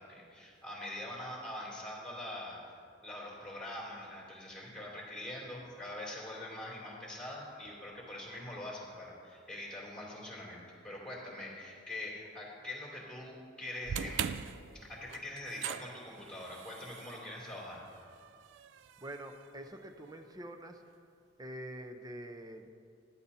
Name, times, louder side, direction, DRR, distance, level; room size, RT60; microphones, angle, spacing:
voice 1, 0.1-2.6 3.0-14.3 14.7-17.9, left 1 dB, 5° left, -5 dB, 2.9 m, -44 dB
sound 1, 13.8-20.1, right 8 dB, 70° right, 0.4 m, -42 dB
voice 2, 19.0-20.8 21.4-22.7, right 1 dB, 20° right, 6 dB, 0.7 m, -45 dB
15.5 x 11.5 x 2.8 m, 2.3 s
head